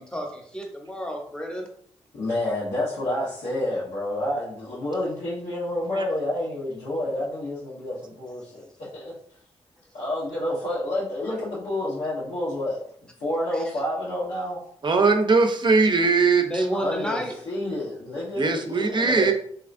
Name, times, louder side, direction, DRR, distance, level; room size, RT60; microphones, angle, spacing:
voice 1, 0.0-1.7 13.5-13.6 16.4-17.3, equal, 5° left, 2 dB, 0.8 m, -30 dB
voice 2, 2.1-9.1 9.9-12.8 13.2-14.6 16.7-17.2 17.4-19.3, left 1 dB, 90° left, -10 dB, 1.1 m, -29 dB
voice 3, 14.8-16.7 18.4-19.3, right 4 dB, 40° right, 6 dB, 0.5 m, -20 dB
3.3 x 2.7 x 2.5 m, 0.62 s
cardioid pair, 70°, 12 cm